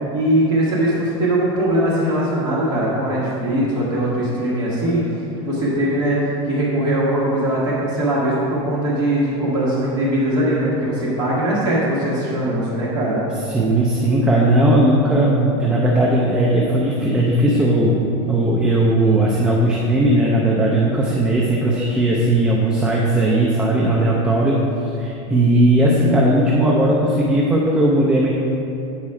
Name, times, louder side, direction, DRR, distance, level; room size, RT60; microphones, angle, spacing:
voice 1, 0.1-6.2 6.5-13.2, right 1 dB, 25° right, -7 dB, 1.5 m, -20 dB
voice 2, 13.5-18.0 18.3-24.6 25.0-28.3, right 1 dB, 5° right, -3 dB, 0.4 m, -17 dB
8.6 x 4.2 x 4.7 m, 2.9 s
supercardioid pair, 175°, 17 cm